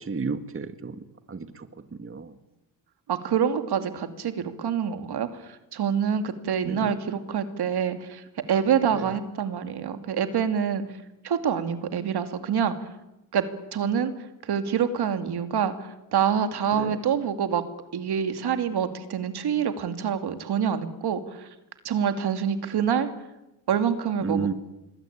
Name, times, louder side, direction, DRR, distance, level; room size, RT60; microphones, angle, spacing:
voice 1, 0.1-1.0 1.3-1.7 2.0-2.3 6.6-6.9 16.8-17.0 24.2-24.5, right 5 dB, 30° right, 10 dB, 2.0 m, -31 dB
voice 2, 3.1-10.8 11.2-12.9 13.3-13.5 13.7-14.1 14.4-17.6 17.9-21.5 21.8-23.1 23.7-24.5, right 8 dB, 70° right, 9 dB, 2.6 m, -26 dB
26.0 x 21.5 x 8.8 m, 0.96 s
cardioid pair, 70°, 40 cm